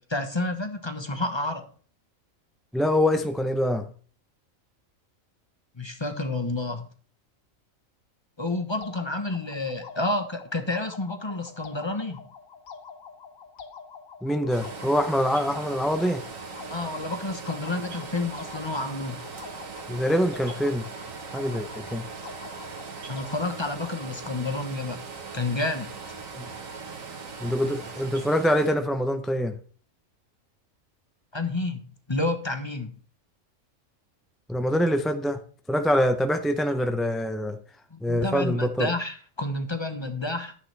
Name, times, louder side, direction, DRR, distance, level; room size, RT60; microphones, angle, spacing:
voice 1, 0.1-1.7 5.8-6.9 8.4-12.3 16.7-19.2 23.1-25.0 25.3-25.9 31.3-31.8 32.1-32.9 37.9-40.6, left 2 dB, 20° left, 1.0 m, -30 dB
voice 2, 2.7-3.9 14.2-16.2 19.9-20.8 21.3-22.1 26.4-26.5 27.4-29.6 34.5-35.4 35.7-37.6 38.0-38.9, equal, ahead, 0.5 m, -25 dB
sound 1, 8.8-24.2, left 5 dB, 80° left, 1.5 m, -46 dB
sound 2, 14.5-28.8, right 4 dB, 70° right, 1.8 m, -40 dB
11.5 x 10.0 x 3.4 m
omnidirectional pair, 1.4 m